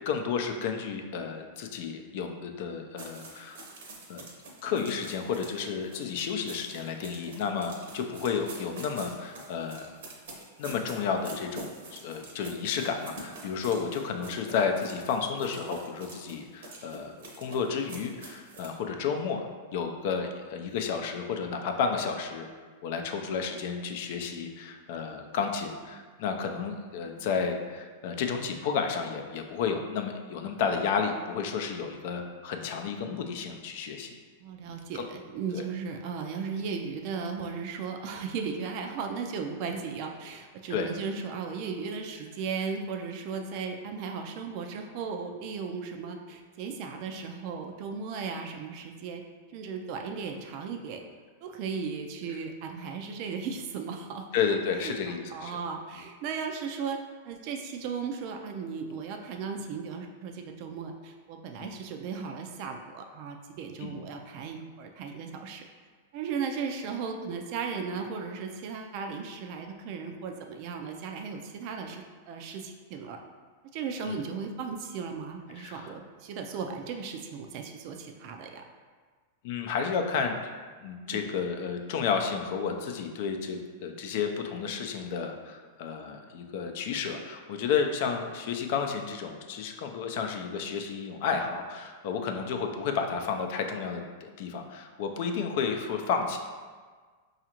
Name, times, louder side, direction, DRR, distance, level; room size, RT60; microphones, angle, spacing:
voice 1, 0.1-3.7 4.1-4.2 4.6-10.0 10.6-19.4 19.7-22.5 22.8-34.1 34.6-35.0 35.5-35.6 40.7-40.9 54.3-55.6 61.6-61.7 63.8-63.9 74.0-74.2 75.5-75.9 79.4-80.5 80.8-96.4, left 6 dB, 60° left, 5 dB, 0.4 m, -32 dB
sound 1, 3.0-18.8, right 2 dB, 75° right, 0.8 m, -46 dB
voice 2, 34.4-49.2 49.5-51.0 51.4-54.2 54.8-55.0 55.3-57.0 57.2-65.6 66.1-73.2 73.7-78.6 81.0-81.3, right 5 dB, 50° right, 3 dB, 0.3 m, -36 dB
4.9 x 2.4 x 2.9 m, 1.5 s
hypercardioid pair, 120°, 0 cm